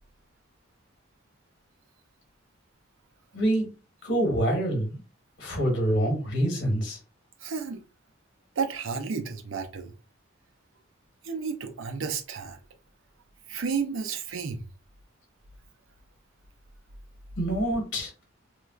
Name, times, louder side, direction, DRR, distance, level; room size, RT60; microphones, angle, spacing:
voice 1, 3.3-3.7 4.0-5.0 5.4-7.0 17.4-18.1, right 1 dB, 60° left, 1.2 m, -26 dB
voice 2, 7.4-7.8 8.6-10.0 11.2-12.6 13.5-14.6, right 5 dB, 70° right, 0.5 m, -32 dB
3.2 x 2.3 x 2.3 m
head